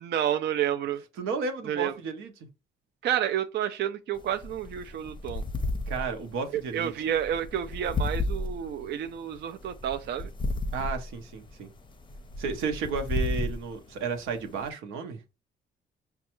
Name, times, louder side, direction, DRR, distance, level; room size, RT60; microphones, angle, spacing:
voice 1, 0.0-1.0 1.7-1.9 3.0-5.4 6.5-10.3, right 10 dB, 60° right, 0.4 m, -30 dB
voice 2, 1.2-2.3 5.9-6.9 10.7-11.7 12.4-15.2, right 5 dB, 90° right, 0.8 m, -32 dB
sound 1, 4.1-14.7, left 2 dB, 25° left, 0.6 m, -34 dB
5.1 x 2.3 x 2.9 m
cardioid pair, 90°, 20 cm